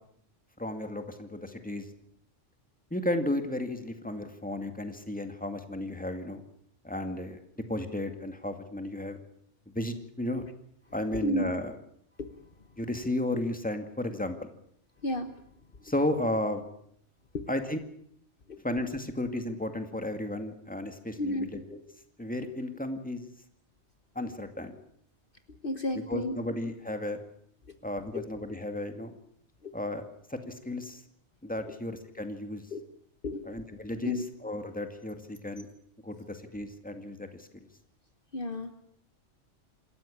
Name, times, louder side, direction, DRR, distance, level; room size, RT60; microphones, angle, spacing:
voice 1, 0.6-1.9 2.9-6.4 6.8-7.4 7.7-9.2 9.7-10.5 10.9-11.7 12.8-14.4 15.8-16.6 17.5-17.8 18.6-21.8 22.2-23.3 24.2-24.7 26.1-27.2 27.8-29.1 29.7-30.0 30.3-31.0 31.4-32.6 33.5-35.7 36.0-37.5, left 1 dB, 5° left, 6 dB, 2.2 m, -33 dB
voice 2, 21.2-21.5 25.5-26.4 28.1-28.2 29.6-29.7 32.7-32.8 33.2-33.5 34.0-34.2 38.3-38.7, left 1 dB, 45° left, 8 dB, 1.4 m, -32 dB
27.0 x 14.0 x 8.7 m, 0.70 s
omnidirectional pair, 1.3 m